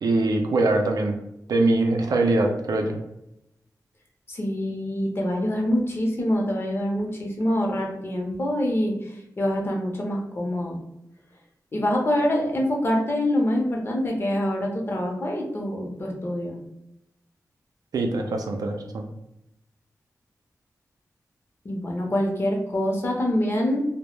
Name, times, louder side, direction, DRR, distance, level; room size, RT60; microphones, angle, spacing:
voice 1, 0.0-1.1 1.5-3.0 17.9-19.1, right 2 dB, 85° right, 3 dB, 0.4 m, -22 dB
voice 2, 4.3-8.9 9.4-10.8 11.7-16.6 21.6-23.9, left 1 dB, 35° left, 0 dB, 0.6 m, -25 dB
2.1 x 2.0 x 3.0 m, 0.84 s
wide cardioid pair, 100°, 6 cm